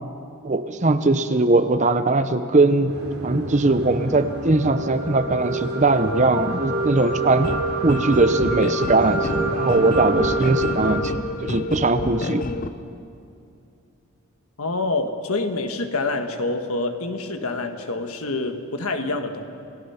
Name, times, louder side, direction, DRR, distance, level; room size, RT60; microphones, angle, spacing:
voice 1, 0.4-2.9 3.2-7.5 7.8-11.1 11.4-12.4, right 2 dB, 35° right, 10 dB, 0.7 m, -20 dB
sound 1, 2.9-11.0, right 2 dB, 70° right, 3.4 m, -27 dB
sound 2, 7.4-12.7, left 2 dB, 40° left, 0.6 m, -30 dB
voice 2, 14.6-19.5, left 2 dB, 75° left, 6 dB, 1.5 m, -26 dB
28.0 x 17.0 x 5.8 m, 2.6 s
head